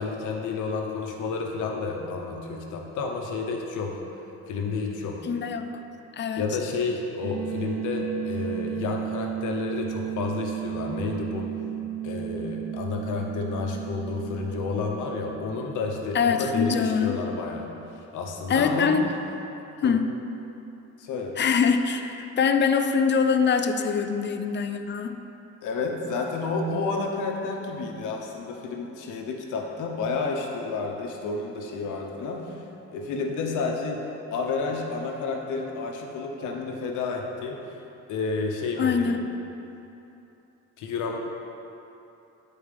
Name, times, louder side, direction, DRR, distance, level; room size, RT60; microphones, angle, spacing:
voice 1, 0.0-3.9 4.5-5.2 6.4-11.5 12.0-17.7 18.1-18.9 19.8-19.9 21.0-21.3 25.6-32.4 32.9-37.6 38.1-39.1 40.8-41.2, left 4 dB, 85° left, 1 dB, 0.9 m, -30 dB
voice 2, 5.2-5.7 6.1-6.4 16.1-17.2 18.5-19.1 19.8-20.1 21.4-25.2 38.8-39.3, left 6 dB, 40° left, 8 dB, 0.4 m, -23 dB
sound 1, 7.2-17.9, right 12 dB, 65° right, 0.5 m, -35 dB
9.0 x 4.6 x 3.4 m, 2.9 s
cardioid pair, 90°, 30 cm